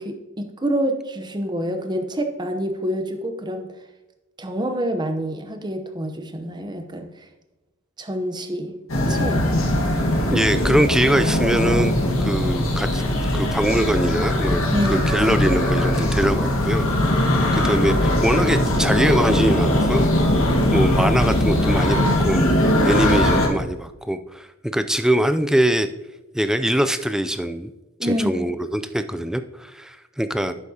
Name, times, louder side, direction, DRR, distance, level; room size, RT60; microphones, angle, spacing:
voice 1, 0.0-3.7 4.4-7.1 8.0-8.7 9.1-9.4 14.7-15.1 28.0-28.4, equal, 20° right, 6 dB, 0.8 m, -27 dB
sound 1, 8.9-23.5, left 1 dB, 75° left, 1.6 m, -20 dB
voice 2, 10.3-11.9 12.2-13.0 13.3-14.6 14.9-16.9 17.1-20.1 20.7-24.5 24.7-25.9 26.3-27.7 28.0-30.5, right 1 dB, 5° right, 10 dB, 0.3 m, -22 dB
11.0 x 8.2 x 2.8 m, 1.1 s
head